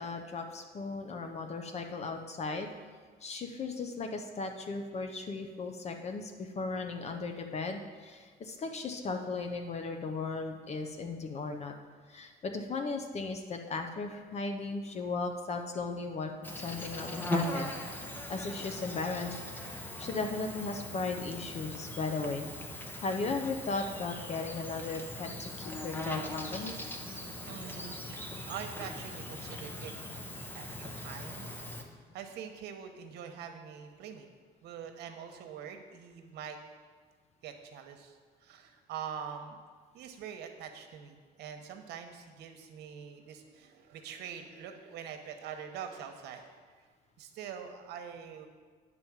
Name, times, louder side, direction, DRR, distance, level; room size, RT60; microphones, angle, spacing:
voice 1, 0.0-2.7 3.2-11.7 12.1-16.3 16.6-17.7 18.3-22.5 22.7-26.7, left 3 dB, 40° left, 5 dB, 0.7 m, -36 dB
Insect, 16.4-31.8, left 1 dB, 10° left, 0.9 m, -39 dB
voice 2, 27.5-29.9 30.5-31.6 32.1-34.3 34.6-36.6 37.4-39.6 39.9-46.6 47.2-48.5, right 8 dB, 80° right, 6 dB, 1.0 m, -44 dB
8.9 x 4.2 x 7.3 m, 1.5 s
cardioid pair, 110°, 17 cm